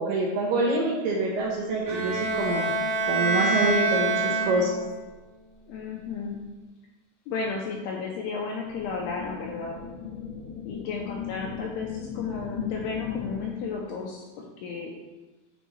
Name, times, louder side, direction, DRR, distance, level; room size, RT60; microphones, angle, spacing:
voice 1, 0.0-2.7 3.1-4.7, right 2 dB, 75° right, -2 dB, 2.5 m, -26 dB
Bowed string instrument, 1.9-5.0, right 3 dB, 60° right, 3.1 m, -26 dB
voice 2, 5.7-6.4 7.3-9.8 10.7-14.2 14.6-14.9, left 5 dB, 85° left, -1 dB, 2.4 m, -33 dB
sound 1, 8.7-13.7, left 7 dB, 60° left, 1.4 m, -37 dB
10.0 x 4.5 x 3.2 m, 1.2 s
omnidirectional pair, 5.3 m